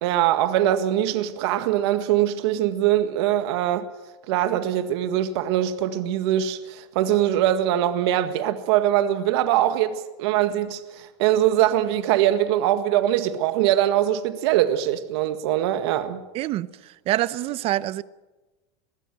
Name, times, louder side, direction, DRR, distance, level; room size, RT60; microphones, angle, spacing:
voice 1, 0.0-3.9 4.3-16.2, right 12 dB, 70° right, 1.8 m, -22 dB
voice 2, 16.3-18.0, right 15 dB, 40° right, 0.8 m, -26 dB
22.0 x 16.0 x 9.1 m
supercardioid pair, 130°, 15 cm